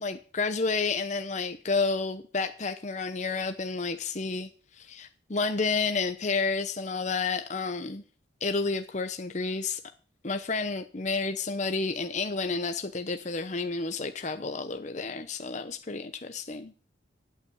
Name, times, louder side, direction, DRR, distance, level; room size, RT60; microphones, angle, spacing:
voice 1, 0.0-8.0 8.4-9.8 10.2-16.7, left 4 dB, 40° left, 8 dB, 0.8 m, -30 dB
11.5 x 8.6 x 8.5 m, 0.41 s
head